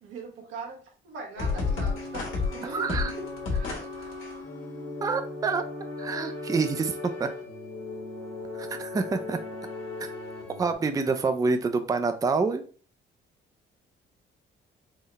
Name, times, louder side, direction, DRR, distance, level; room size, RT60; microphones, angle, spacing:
voice 1, 0.0-4.1, right 4 dB, 90° right, 0 dB, 1.3 m, -41 dB
sound 1, 1.4-10.7, left 4 dB, 80° left, 1.4 m, -34 dB
voice 2, 2.6-3.1 5.0-5.6 6.0-7.3 8.6-9.4 10.0-10.1 10.6-12.6, right 4 dB, 20° right, 8 dB, 0.4 m, -27 dB
3.9 x 2.1 x 4.0 m, 0.40 s
cardioid pair, 90°, 20 cm